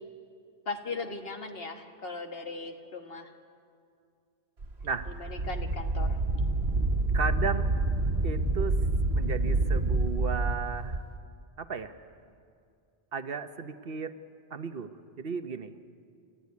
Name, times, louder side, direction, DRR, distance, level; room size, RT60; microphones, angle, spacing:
voice 1, 0.7-3.3 5.2-6.2, left 3 dB, 65° left, 5 dB, 1.8 m, -38 dB
Wind, 4.6-11.0, right 2 dB, 90° right, 1.8 m, -28 dB
voice 2, 4.8-5.2 7.1-7.7 8.2-11.0 11.6-11.9 13.1-14.2 14.5-15.7, right 5 dB, 65° right, 10 dB, 1.1 m, -35 dB
29.5 x 13.5 x 9.5 m, 2.3 s
omnidirectional pair, 1.1 m